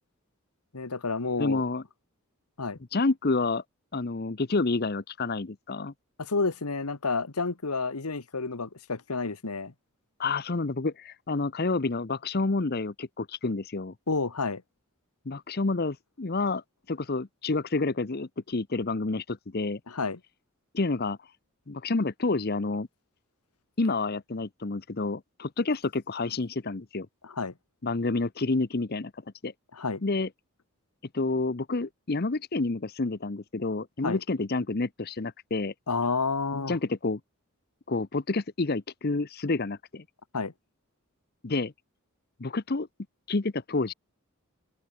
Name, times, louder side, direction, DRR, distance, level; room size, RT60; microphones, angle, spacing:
voice 1, 0.7-1.6 2.6-2.8 6.2-9.7 14.1-14.6 19.9-20.2 27.2-27.5 29.7-30.0 34.0-34.2 35.9-36.8 40.3-40.5, left 4 dB, 90° left, 1.4 m, -30 dB
voice 2, 1.4-1.8 2.9-3.6 3.9-5.9 10.2-13.9 15.3-16.6 16.9-19.8 20.7-21.2 21.7-22.9 23.8-27.1 27.8-29.1 29.4-29.5 30.0-30.3 31.1-35.7 36.5-37.2 37.9-40.0 41.4-41.7 42.4-42.9 43.3-43.9, left 3 dB, 45° left, 0.8 m, -29 dB
open air
head